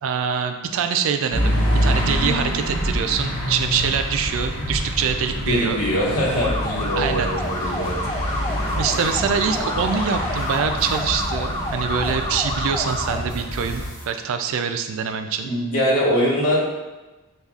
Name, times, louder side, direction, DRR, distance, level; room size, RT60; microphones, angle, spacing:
voice 1, 0.0-5.8 7.0-7.3 8.8-15.5, right 6 dB, 60° right, 7 dB, 0.3 m, -24 dB
sound 1, 1.3-13.9, equal, 60° left, 1.2 m, -26 dB
voice 2, 5.4-7.9 15.4-16.6, equal, 85° left, -5 dB, 1.2 m, -22 dB
sound 2, 6.3-13.2, left 1 dB, 20° left, 0.3 m, -29 dB
sound 3, 7.4-14.0, right 1 dB, 10° right, 0.9 m, -36 dB
6.5 x 2.4 x 2.4 m, 1.1 s
head